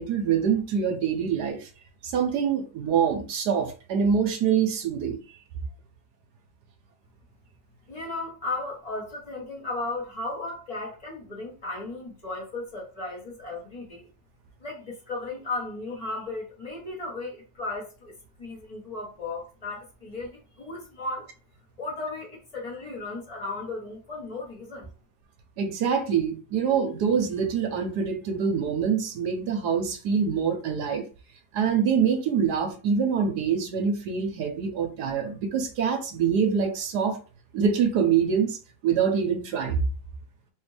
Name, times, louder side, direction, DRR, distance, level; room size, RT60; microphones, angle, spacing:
voice 1, 0.0-1.7 2.0-5.4 25.6-31.1 31.5-37.2 37.5-38.6 38.8-39.9, right 6 dB, 70° right, 1.1 m, -25 dB
voice 2, 7.9-14.1 14.6-21.3 21.8-24.9, left 2 dB, 25° left, 1.0 m, -35 dB
3.4 x 2.5 x 3.2 m
omnidirectional pair, 2.0 m